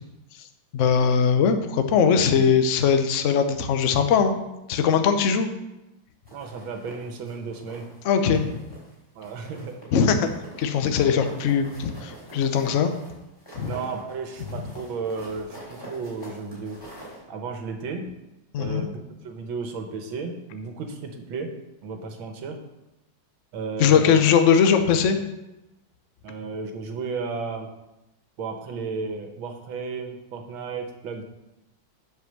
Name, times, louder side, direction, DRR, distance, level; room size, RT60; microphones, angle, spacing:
voice 1, 0.7-4.4 4.7-5.5 8.0-8.6 9.9-10.3 10.6-12.9 13.5-13.7 18.5-18.9 23.8-25.2, left 6 dB, 60° left, 7 dB, 0.8 m, -20 dB
sound 1, 6.3-8.0 8.3-8.9 9.2-17.2, right 1 dB, 10° left, 3.6 m, -45 dB
voice 2, 6.3-7.9 9.2-9.8 11.1-11.3 13.6-16.8 17.3-18.1 18.6-21.5 21.8-22.6 23.5-24.2 26.2-27.7 28.4-31.2, right 4 dB, 80° right, 5 dB, 1.8 m, -33 dB
8.0 x 5.3 x 6.5 m, 0.95 s
omnidirectional pair, 2.2 m